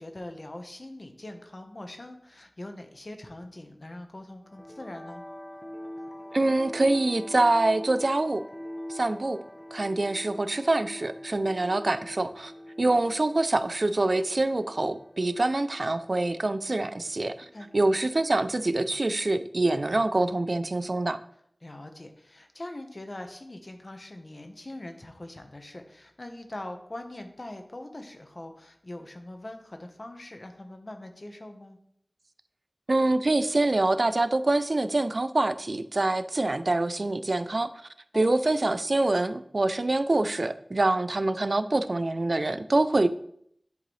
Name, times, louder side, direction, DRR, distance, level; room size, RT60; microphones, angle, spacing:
voice 1, 0.0-5.2 12.9-13.0 17.5-17.7 21.6-31.8 38.1-38.3, left 1 dB, 55° left, 5 dB, 1.0 m, -42 dB
sound 1, 4.4-18.5, left 1 dB, 25° left, 0.8 m, -44 dB
voice 2, 6.3-8.4 8.9-9.4 9.7-12.5 12.8-17.5 17.7-21.2 32.9-37.7 38.1-43.1, right 2 dB, 70° right, 12 dB, 0.4 m, -25 dB
10.5 x 3.9 x 3.2 m, 0.70 s
wide cardioid pair, 50°, 0 cm